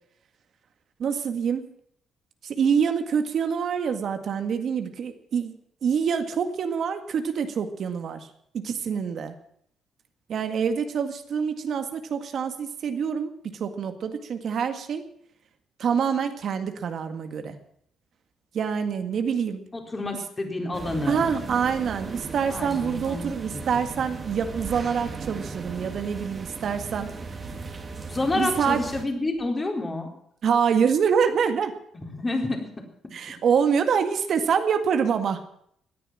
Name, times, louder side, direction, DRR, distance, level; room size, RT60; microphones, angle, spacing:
voice 1, 1.0-1.7 2.4-8.3 8.5-9.3 10.3-15.0 15.8-17.6 18.5-19.7 21.1-27.1 28.4-28.8 30.4-31.7 33.1-35.4, right 7 dB, 60° right, 7 dB, 1.9 m, -26 dB
voice 2, 19.7-21.3 22.5-23.2 23.5-23.6 28.1-30.1 32.0-32.7, left 2 dB, 25° left, 3 dB, 4.1 m, -29 dB
sound 1, 20.7-29.1, right 4 dB, 35° right, 2.5 m, -37 dB
17.5 x 10.0 x 7.5 m, 0.68 s
cardioid pair, 90°, 0 cm